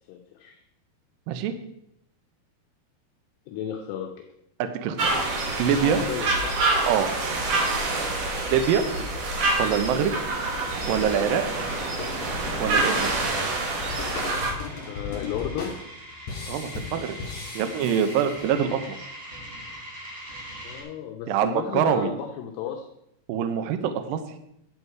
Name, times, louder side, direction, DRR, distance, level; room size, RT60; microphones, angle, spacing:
voice 1, 0.1-0.6 3.5-4.1 5.8-6.6 7.9-8.1 14.8-15.7 20.6-22.9, left 9 dB, 75° left, 2 dB, 2.8 m, -33 dB
voice 2, 4.6-5.2 5.6-6.0 6.9-7.1 8.5-8.9 9.6-10.1 10.9-11.4 12.6-13.0 16.5-17.2 17.5-18.8 21.3-22.1 23.3-24.2, right 8 dB, 75° right, 7 dB, 2.1 m, -24 dB
sound 1, 5.0-14.5, right 2 dB, 55° right, 2.7 m, -26 dB
sound 2, 10.7-20.8, equal, 30° right, 3.0 m, -43 dB
sound 3, 11.8-18.9, left 4 dB, 45° left, 3.9 m, -38 dB
11.0 x 8.1 x 4.7 m, 0.79 s
omnidirectional pair, 5.2 m